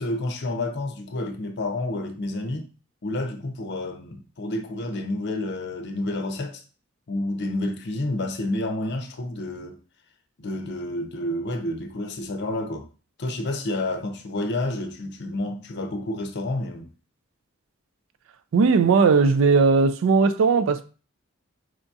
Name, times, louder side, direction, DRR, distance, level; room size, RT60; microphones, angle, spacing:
voice 1, 0.0-2.7 3.0-6.6 7.1-9.8 10.4-12.8 13.2-16.9, left 1 dB, 55° left, 0.6 m, -29 dB
voice 2, 18.5-20.8, right 4 dB, 65° right, 0.4 m, -18 dB
4.9 x 2.4 x 2.6 m
head